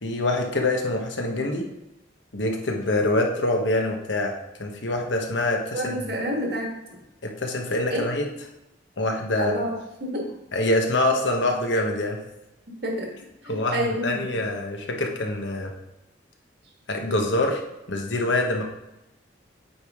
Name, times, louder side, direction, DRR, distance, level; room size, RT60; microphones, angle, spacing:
voice 1, 0.0-1.7 2.3-6.0 7.2-8.3 9.0-9.6 10.5-12.2 13.4-15.7 16.9-17.6 17.9-18.6, left 2 dB, 75° left, 2 dB, 1.1 m, -25 dB
voice 2, 5.7-7.0 7.9-8.0 9.4-9.7 10.0-10.3 12.8-13.1 13.4-14.3, equal, 55° right, 0 dB, 1.6 m, -28 dB
8.5 x 4.9 x 3.6 m, 0.91 s
head